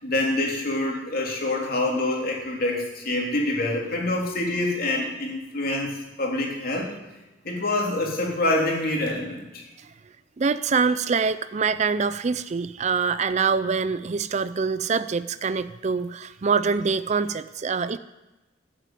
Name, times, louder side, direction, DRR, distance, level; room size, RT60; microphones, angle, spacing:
voice 1, 0.0-6.9 7.4-9.6, left 2 dB, 50° left, -1 dB, 3.1 m, -26 dB
voice 2, 10.4-18.0, right 5 dB, 35° right, 14 dB, 0.4 m, -25 dB
14.5 x 7.6 x 9.1 m, 1.1 s
head